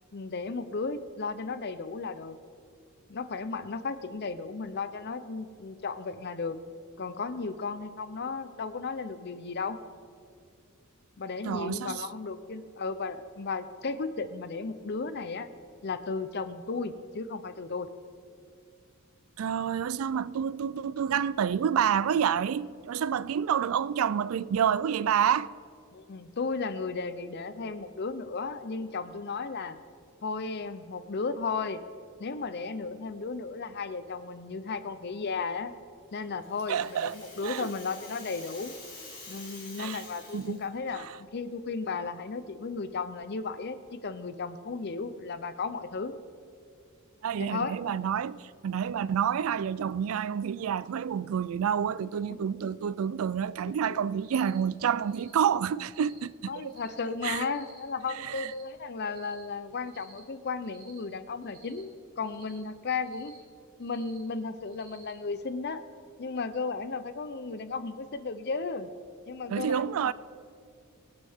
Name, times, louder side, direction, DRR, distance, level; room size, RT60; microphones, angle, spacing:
voice 1, 0.1-2.4 3.1-6.6 7.0-9.8 11.2-15.5 15.8-17.9 25.9-29.8 30.2-31.8 32.2-35.7 36.1-38.7 39.3-46.1 47.3-47.8 52.3-52.4 53.9-54.0 56.5-61.9 62.2-63.3 63.8-65.8 66.2-68.9 69.3-70.1, left 4 dB, 50° left, 0.6 m, -34 dB
voice 2, 11.4-12.1 19.4-25.5 36.7-37.2 37.4-37.7 39.8-40.0 40.3-40.6 40.9-41.1 47.2-56.8 57.2-57.5 58.1-58.5 69.5-70.1, right 8 dB, 80° right, 0.4 m, -28 dB
Rattle (instrument), 36.2-40.9, left 3 dB, 25° left, 3.5 m, -48 dB
Cricket, 54.2-54.6 55.0-55.4 55.8-56.2 56.6-57.0 57.4-57.8 58.2-58.6 59.0-59.4 59.8-60.2 60.6-61.0 61.4-61.8 62.2-62.6 63.0-63.4 63.8-64.2 64.7-65.1, right 4 dB, 40° right, 3.0 m, -56 dB
23.5 x 8.1 x 3.6 m
head